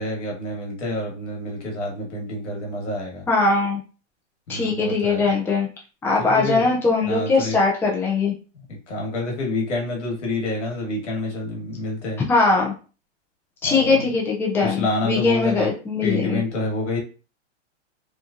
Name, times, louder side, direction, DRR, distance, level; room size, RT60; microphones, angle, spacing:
voice 1, 0.0-3.3 4.5-5.3 6.1-6.7 7.0-7.6 8.7-12.2 13.6-14.1 14.6-15.7 16.0-17.0, left 2 dB, 75° left, -1 dB, 1.4 m, -28 dB
voice 2, 3.3-3.8 4.5-5.7 6.0-8.3 12.3-12.7 13.6-16.4, left 3 dB, 5° left, -2 dB, 0.5 m, -20 dB
2.8 x 2.4 x 2.5 m, 0.35 s
hypercardioid pair, 130°, 35 cm